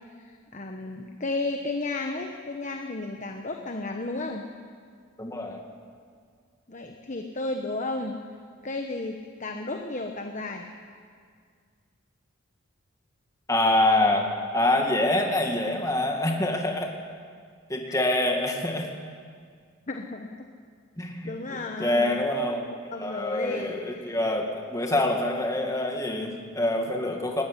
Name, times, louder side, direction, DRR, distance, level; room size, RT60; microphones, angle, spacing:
voice 1, 0.2-4.4 6.7-8.2 8.6-10.7 17.9-18.1 19.9-20.3 21.2-22.2 22.9-24.2, left 2 dB, 35° left, 4 dB, 1.1 m, -33 dB
voice 2, 5.2-5.6 13.5-14.3 14.5-16.9 17.7-18.9 21.0-27.4, left 1 dB, 15° left, 2 dB, 2.0 m, -26 dB
19.5 x 15.5 x 9.9 m, 2.1 s
head